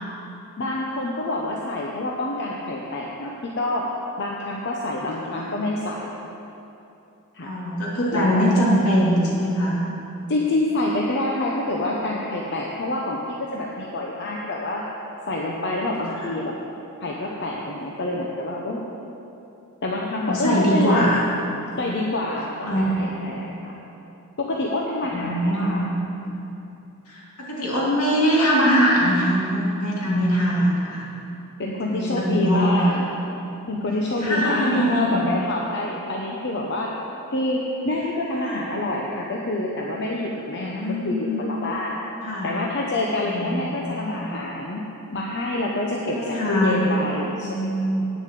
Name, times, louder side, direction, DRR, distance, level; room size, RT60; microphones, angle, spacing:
voice 1, 0.6-3.9 4.2-6.1 7.3-7.5 8.1-8.3 10.3-14.8 15.3-16.5 17.0-18.9 19.8-21.2 21.8-23.7 24.4-25.8 31.6-33.1 33.7-36.9 37.3-41.9 42.4-44.8 45.1-47.7, left 2 dB, 50° left, -2 dB, 0.9 m, -27 dB
voice 2, 7.4-9.8 20.3-21.2 22.7-23.5 25.1-25.9 26.2-26.4 27.1-31.1 31.8-33.0 34.2-35.2 38.4-38.7 40.6-41.4 42.2-42.5 43.2-44.2 46.1-46.8 47.4-48.0, equal, 75° left, -5 dB, 2.8 m, -22 dB
9.3 x 7.1 x 7.6 m, 2.9 s
head